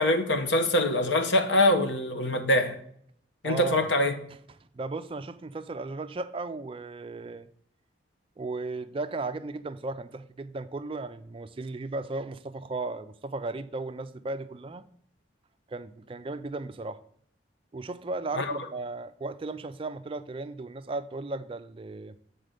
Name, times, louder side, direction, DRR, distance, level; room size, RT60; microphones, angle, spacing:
voice 1, 0.0-2.8 3.4-4.1 18.3-18.5, left 1 dB, 85° left, 1.0 m, -24 dB
voice 2, 3.4-3.9 4.7-7.5 8.4-14.9 15.7-17.0 17.7-22.1, right 3 dB, 30° right, 0.4 m, -35 dB
7.7 x 4.2 x 6.6 m
head